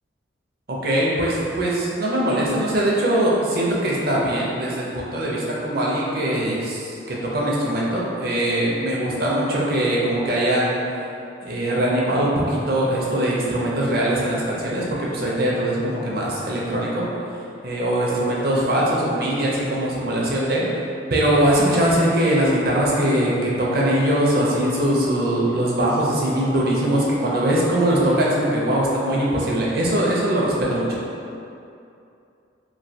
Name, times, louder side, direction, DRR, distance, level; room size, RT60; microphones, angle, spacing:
voice 1, 0.7-10.8 11.4-17.1 17.6-20.6 21.1-31.0, right 1 dB, 50° right, -5 dB, 0.6 m, -21 dB
3.1 x 2.6 x 2.7 m, 2.6 s
head